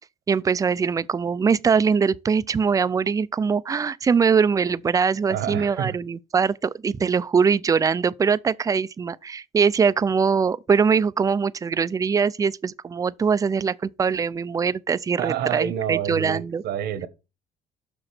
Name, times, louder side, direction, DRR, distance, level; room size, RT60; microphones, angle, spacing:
voice 1, 0.3-16.6, right 6 dB, 20° right, 0.3 m, -22 dB
voice 2, 5.3-6.0 15.2-17.1, right 9 dB, 70° right, 1.1 m, -28 dB
6.1 x 5.0 x 5.8 m
cardioid pair, 110°, 17 cm